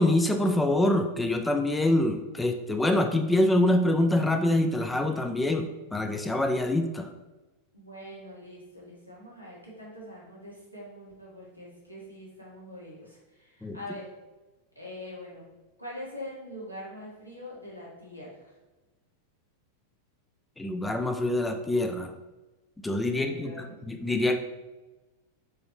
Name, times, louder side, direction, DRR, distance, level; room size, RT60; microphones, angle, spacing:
voice 1, 0.0-7.1 13.6-13.8 20.6-22.1 22.8-24.4, left 1 dB, 5° left, 6 dB, 0.3 m, -25 dB
voice 2, 7.7-14.1 14.7-15.4 15.8-18.5 23.1-23.8, left 1 dB, 90° left, -5 dB, 1.3 m, -43 dB
3.9 x 3.8 x 2.9 m, 1.1 s
figure-of-eight pair, 90°, 0 cm